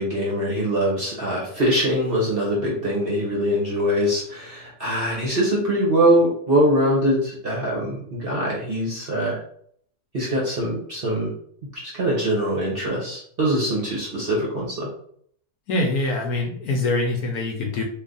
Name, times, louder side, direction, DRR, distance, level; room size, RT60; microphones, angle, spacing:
voice 1, 0.0-9.4 10.1-11.3 11.7-14.9, equal, 45° right, -4 dB, 0.9 m, -23 dB
voice 2, 15.7-17.8, left 2 dB, 65° left, 0 dB, 1.1 m, -24 dB
3.2 x 2.5 x 3.8 m, 0.63 s
omnidirectional pair, 1.8 m